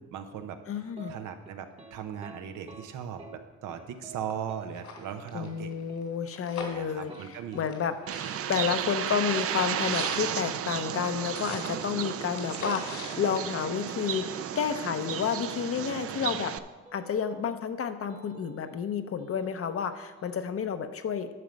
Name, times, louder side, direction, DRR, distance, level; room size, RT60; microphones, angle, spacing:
voice 1, 0.0-0.6 1.1-3.2 3.6-5.7 6.6-7.6 8.4-8.6, right 8 dB, 85° right, 7 dB, 0.9 m, -38 dB
voice 2, 0.7-1.2 5.3-8.0 8.5-16.5 16.9-21.3, left 7 dB, 50° left, 9 dB, 0.8 m, -30 dB
sound 1, 0.9-1.1 1.4-1.9 2.2-2.4 2.7-2.9 3.2-3.4 3.7-4.2 4.5-4.7 5.0-5.1 5.5-5.6 5.9-6.0 6.5-7.7 8.0-8.2 8.5-9.0 9.3-9.5 9.7-9.9 10.2-10.4 12.5-13.3 15.3-16.0 16.9-17.7 18.1-18.9 19.2-20.4, right 4 dB, 20° right, 1.1 m, -51 dB
sound 2, 3.9-4.0 4.3-4.4 4.7-7.9 8.1-14.2 14.6-14.7, left 4 dB, 70° left, 2.5 m, -43 dB
Bird, 8.1-16.6, right 10 dB, 50° right, 0.5 m, -33 dB
11.0 x 5.9 x 5.2 m, 1.2 s
cardioid pair, 90°, 30 cm